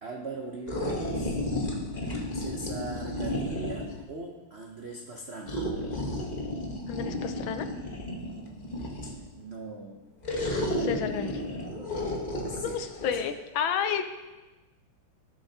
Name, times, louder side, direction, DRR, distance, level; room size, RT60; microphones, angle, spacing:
voice 1, 0.0-1.4 2.3-5.7 9.0-10.0 12.5-12.8, right 2 dB, 70° right, 0 dB, 0.6 m, -40 dB
sound 1, 0.7-4.0 5.5-9.3 10.2-13.2, left 1 dB, 30° left, 1.0 m, -32 dB
voice 2, 6.9-7.7 10.8-11.4 12.6-14.0, left 8 dB, 75° left, 9 dB, 1.4 m, -31 dB
18.0 x 6.8 x 2.8 m, 1.2 s
omnidirectional pair, 2.3 m